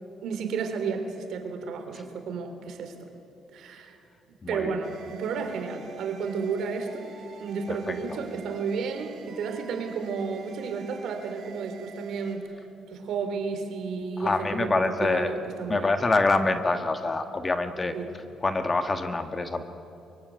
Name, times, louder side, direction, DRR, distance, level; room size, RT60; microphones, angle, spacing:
voice 1, 0.2-2.9 3.5-4.0 4.5-7.1 7.4-12.5 12.9-15.9 17.9-18.1, right 5 dB, 70° right, 6 dB, 3.6 m, -32 dB
voice 2, 4.4-4.8 7.7-8.2 14.2-15.3 15.7-19.6, left 3 dB, 25° left, 8 dB, 1.6 m, -26 dB
sound 1, 4.8-12.4, right 5 dB, 55° right, 3.9 m, -48 dB
23.5 x 23.0 x 9.5 m, 2.8 s
cardioid pair, 115°, 0 cm